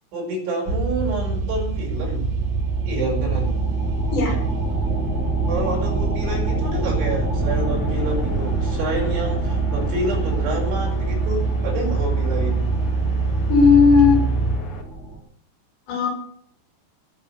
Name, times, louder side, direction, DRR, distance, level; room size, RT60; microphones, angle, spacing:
voice 1, 0.1-2.3 2.8-3.6 5.5-12.7, right 1 dB, 80° right, -2 dB, 8.0 m, -28 dB
sound 1, 0.7-14.6, right 4 dB, 50° right, 2.2 m, -24 dB
sound 2, 2.4-15.2, right 2 dB, 20° right, 2.0 m, -29 dB
sound 3, 7.2-14.8, left 4 dB, 45° left, 2.0 m, -38 dB
voice 2, 13.5-14.2 15.9-16.1, left 5 dB, 70° left, 0 dB, 8.5 m, -15 dB
19.5 x 8.6 x 6.8 m, 0.63 s
omnidirectional pair, 5.4 m